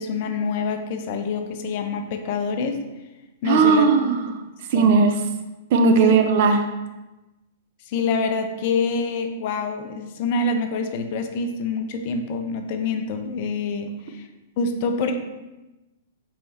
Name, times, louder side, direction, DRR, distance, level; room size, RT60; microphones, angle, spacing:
voice 1, 0.0-2.8 3.4-3.9 4.7-4.9 6.0-6.2 7.9-14.3 14.6-15.2, left 4 dB, 45° left, 6 dB, 0.4 m, -26 dB
voice 2, 3.4-4.3 4.7-5.2 5.7-6.6, right 5 dB, 50° right, 4 dB, 0.5 m, -17 dB
4.4 x 3.2 x 2.7 m, 1.1 s
figure-of-eight pair, 105°, 0 cm